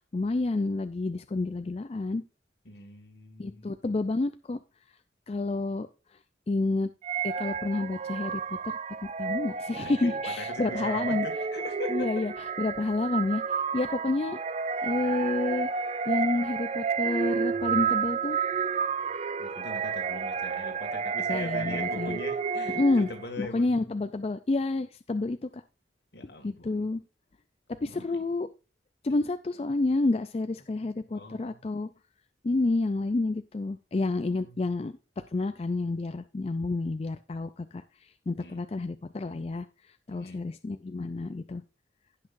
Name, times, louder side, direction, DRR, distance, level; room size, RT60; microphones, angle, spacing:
voice 1, 0.1-2.2 3.4-4.6 5.3-5.9 6.5-6.9 7.2-8.8 9.2-11.3 11.9-14.4 14.8-15.7 16.1-18.4 21.3-22.2 22.7-23.1 23.4-25.6 26.4-27.0 27.8-28.5 29.0-31.9 32.4-41.6, left 2 dB, 35° left, 0.4 m, -29 dB
voice 2, 2.7-3.7 9.8-12.2 19.4-23.8 26.1-26.8 27.8-28.2 30.8-31.6 34.3-34.6 38.4-38.6 40.1-40.4, left 2 dB, 70° left, 2.1 m, -42 dB
sound 1, 7.0-23.3, right 6 dB, 35° right, 0.4 m, -31 dB
16.5 x 5.8 x 2.6 m
head